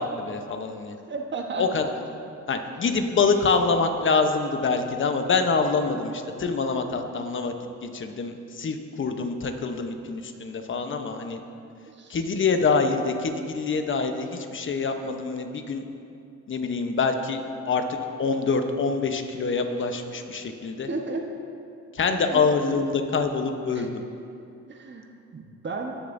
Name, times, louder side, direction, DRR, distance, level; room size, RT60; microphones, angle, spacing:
voice 1, 0.0-1.0 1.6-1.9 2.5-7.5 7.8-11.4 12.1-15.8 16.5-20.9 21.9-23.9, left 4 dB, 40° left, 6 dB, 0.9 m, -25 dB
voice 2, 1.1-1.6 12.0-12.2 20.9-21.2 22.3-22.4 23.7-23.8 24.7-25.0 25.3-26.0, right 3 dB, 40° right, 2 dB, 1.2 m, -33 dB
17.0 x 6.6 x 2.7 m, 2.5 s
cardioid pair, 90°, 30 cm